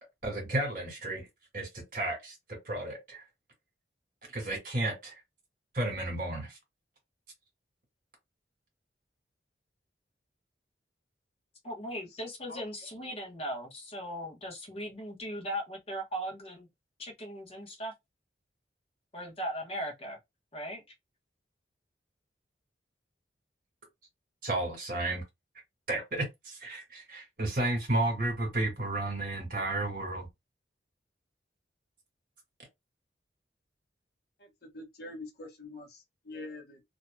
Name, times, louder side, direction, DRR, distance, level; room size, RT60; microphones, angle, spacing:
voice 1, 0.2-1.2 1.5-2.3 2.6-3.2 4.3-5.1 5.7-6.6 24.4-25.2 25.9-30.3, right 2 dB, 50° right, 1.7 m, -32 dB
voice 2, 11.6-16.7 17.0-17.9 19.1-20.2 20.5-20.8, equal, 35° left, 1.1 m, -38 dB
voice 3, 34.4-36.8, left 2 dB, 60° left, 0.9 m, -45 dB
2.9 x 2.8 x 2.2 m
head